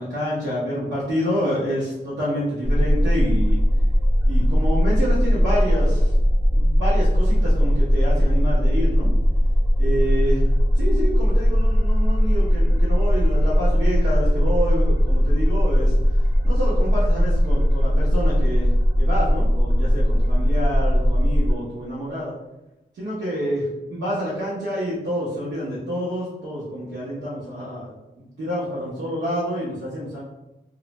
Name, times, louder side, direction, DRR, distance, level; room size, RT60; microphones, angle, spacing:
voice 1, 0.0-3.6 4.3-6.1 6.5-9.1 9.8-15.9 16.4-18.7 19.0-22.3 22.9-30.2, equal, 80° right, -9 dB, 0.8 m, -28 dB
sound 1, 2.6-21.5, equal, 25° right, 0.7 m, -19 dB
2.4 x 2.1 x 3.0 m, 0.95 s
wide cardioid pair, 105°, 19 cm